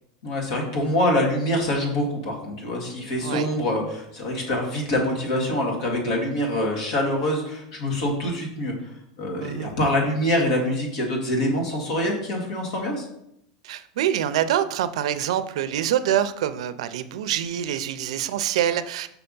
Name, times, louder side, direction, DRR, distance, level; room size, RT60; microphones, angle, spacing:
voice 1, 0.2-8.7 9.2-13.1, left 1 dB, 65° left, 0 dB, 2.0 m, -25 dB
voice 2, 9.4-9.7 13.6-19.1, right 10 dB, 80° right, 12 dB, 0.4 m, -25 dB
5.8 x 3.4 x 5.4 m, 0.76 s
supercardioid pair, 175°, 3 cm